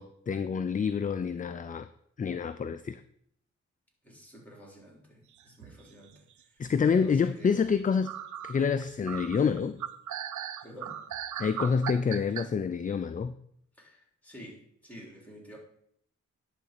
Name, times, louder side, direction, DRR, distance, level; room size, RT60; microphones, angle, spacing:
voice 1, 0.0-1.9 2.2-3.0 6.6-8.2 8.4-9.8 11.4-13.3, left 6 dB, 30° left, 12 dB, 0.4 m, -27 dB
voice 2, 4.0-7.5 10.6-11.0 13.7-15.6, equal, 5° left, -2 dB, 3.7 m, -50 dB
sound 1, 5.4-6.1 6.6-7.2 7.6-7.7 8.0-12.5, right 10 dB, 85° right, 0.6 m, -38 dB
10.5 x 4.0 x 6.7 m, 0.70 s
cardioid pair, 80°, 29 cm